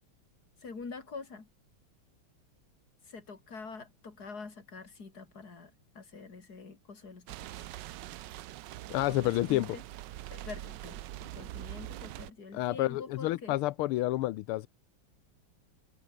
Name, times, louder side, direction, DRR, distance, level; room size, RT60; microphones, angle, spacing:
voice 1, 0.6-1.5 3.1-7.7 9.1-9.8 10.3-13.5, left 4 dB, 45° left, 3.6 m, -46 dB
sound 1, 7.3-12.3, right 15 dB, 75° right, 1.1 m, -43 dB
voice 2, 8.9-9.7 12.5-14.7, left 16 dB, 85° left, 1.6 m, -29 dB
omnidirectional pair, 2.4 m